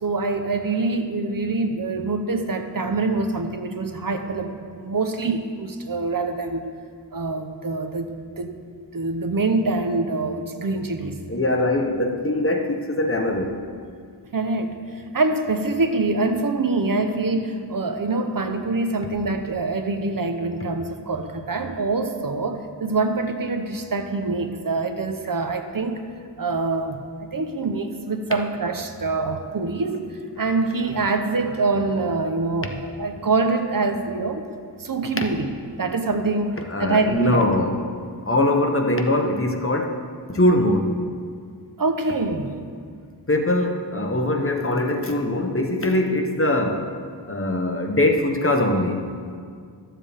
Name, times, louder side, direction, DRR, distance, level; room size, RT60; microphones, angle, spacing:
voice 1, 0.0-6.7 7.1-8.6 8.9-11.2 14.3-26.0 26.4-27.0 27.3-30.0 30.4-34.5 34.8-35.5 35.8-37.5 41.8-42.5, right 3 dB, 55° right, 6 dB, 0.7 m, -25 dB
voice 2, 11.3-13.6 36.6-38.0 38.3-40.0 40.3-41.0 43.3-46.9 47.3-49.0, left 1 dB, 30° left, 3 dB, 0.8 m, -22 dB
13.5 x 7.4 x 3.4 m, 2.1 s
wide cardioid pair, 75°, 41 cm